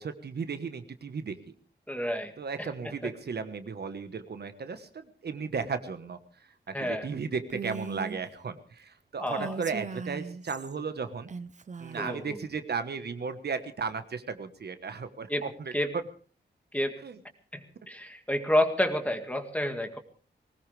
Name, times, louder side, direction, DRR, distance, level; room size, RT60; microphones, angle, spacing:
voice 1, 0.0-1.4 2.4-6.2 6.7-11.3 11.8-15.7 17.0-17.2, right 5 dB, 60° right, 9 dB, 1.3 m, -35 dB
voice 2, 1.9-2.3 2.6-2.7 3.0-3.1 6.7-7.1 9.2-9.5 12.0-12.4 15.3-15.5 15.7-15.9 16.7-17.0 17.5-20.0, left 1 dB, 10° left, 5 dB, 1.9 m, -29 dB
Female speech woman speaking, 7.5-8.2 9.3-10.7 11.3-12.2, right 5 dB, 40° right, 0.8 m, -39 dB
20.5 x 19.0 x 3.4 m, 0.39 s
wide cardioid pair, 160°, 19 cm